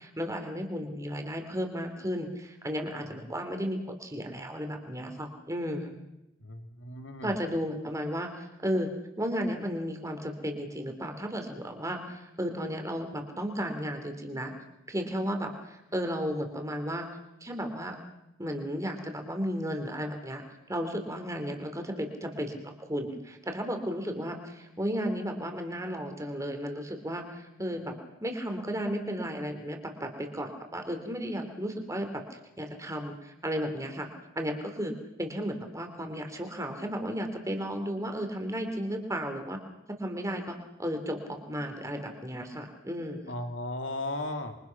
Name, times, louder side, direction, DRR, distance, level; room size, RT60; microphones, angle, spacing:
voice 1, 0.0-6.0 7.2-8.9 9.2-14.5 14.9-17.1 17.4-18.0 18.4-20.4 20.7-27.2 27.6-27.9 28.2-32.2 32.6-34.1 34.3-39.6 39.9-43.3, equal, 15° right, 5 dB, 3.1 m, -34 dB
voice 2, 6.4-7.4 43.3-44.6, left 2 dB, 65° left, 5 dB, 2.8 m, -36 dB
27.0 x 24.0 x 6.0 m, 0.90 s
head